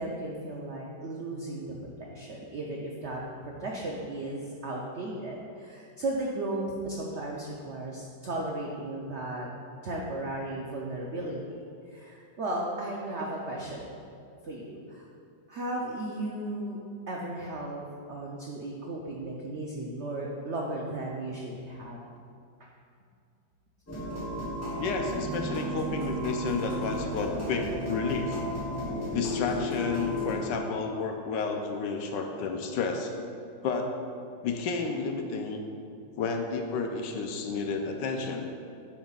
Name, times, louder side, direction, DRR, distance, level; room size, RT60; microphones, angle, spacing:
voice 1, 0.0-9.5 9.8-11.6 11.9-13.9 14.4-15.1 15.5-16.8 17.1-22.0, right 1 dB, 75° right, -2 dB, 0.6 m, -35 dB
sound 1, 23.9-30.3, left 1 dB, 10° left, 0.7 m, -33 dB
voice 2, 24.8-28.4 29.1-33.1 33.6-33.9 34.4-35.6 36.2-38.5, left 4 dB, 75° left, 4 dB, 1.2 m, -31 dB
10.0 x 5.3 x 2.4 m, 2.4 s
omnidirectional pair, 2.0 m